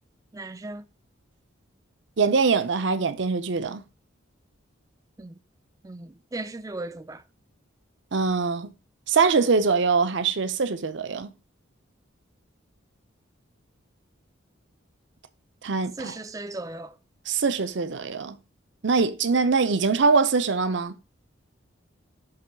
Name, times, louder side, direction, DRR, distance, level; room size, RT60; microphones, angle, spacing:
voice 1, 0.3-0.9 5.2-5.4 5.8-7.2 16.0-17.0, right 2 dB, 15° right, 0.4 m, -37 dB
voice 2, 2.2-3.8 8.1-8.7 9.1-11.3 15.6-16.1 17.3-18.4 18.8-20.9, right 4 dB, 60° right, 0.6 m, -23 dB
7.6 x 3.1 x 6.2 m
head